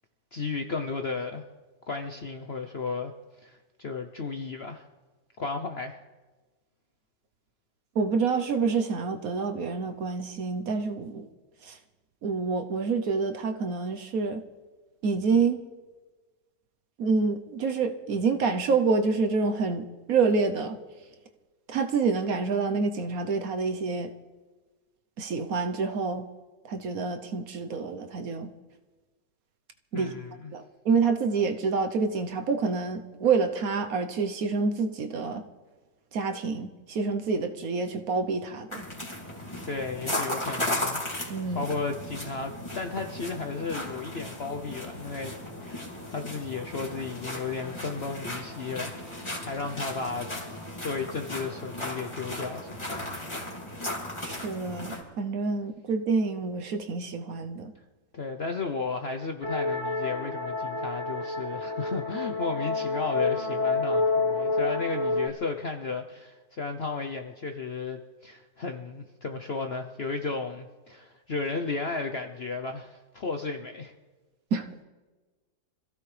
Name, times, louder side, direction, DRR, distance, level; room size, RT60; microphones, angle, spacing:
voice 1, 0.3-1.4 1.9-3.1 3.4-4.9 5.4-6.0 29.9-30.5 39.7-41.0 41.5-45.3 45.6-50.3 50.8-53.0 58.1-73.9, left 4 dB, 50° left, 5 dB, 0.7 m, -34 dB
voice 2, 7.9-11.3 11.6-11.8 12.2-14.4 15.0-15.6 17.0-20.8 21.7-24.1 25.2-26.3 26.7-28.5 29.9-30.1 30.5-35.4 36.1-38.9 41.3-41.7 54.2-57.7 74.5-74.7, right 4 dB, 60° right, 7 dB, 1.2 m, -27 dB
sound 1, 38.7-55.0, left 1 dB, 15° left, 2.7 m, -36 dB
sound 2, 59.4-65.3, left 3 dB, 15° right, 0.8 m, -28 dB
26.0 x 15.5 x 3.3 m, 1.3 s
omnidirectional pair, 1.9 m